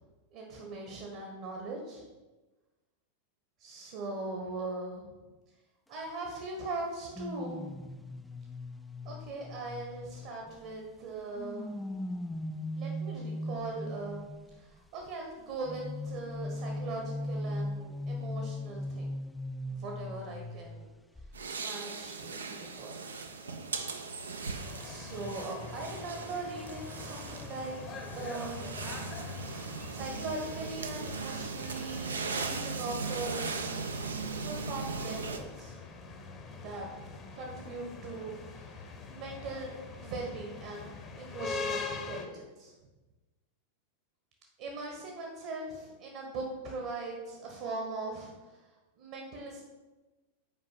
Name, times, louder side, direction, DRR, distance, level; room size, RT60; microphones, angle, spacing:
voice 1, 0.3-2.0 3.6-5.3 5.9-7.6 9.0-11.7 12.7-19.1 19.7-20.9 21.6-22.9 24.8-27.8 28.1-29.0 29.5-33.7 34.4-35.8 36.5-36.9 37.3-42.7 44.6-48.6 49.0-49.6, right 3 dB, 50° right, 1 dB, 1.3 m, -40 dB
sound 1, 7.1-10.8 11.4-14.6 15.7-20.9 21.2-21.4, left 1 dB, 5° left, 0.4 m, -39 dB
sound 2, 21.3-35.4, right 4 dB, 70° right, 0.6 m, -38 dB
sound 3, 24.6-42.3, left 4 dB, 30° left, 0.9 m, -43 dB
6.0 x 4.5 x 5.7 m, 1.2 s
figure-of-eight pair, 90°, 0 cm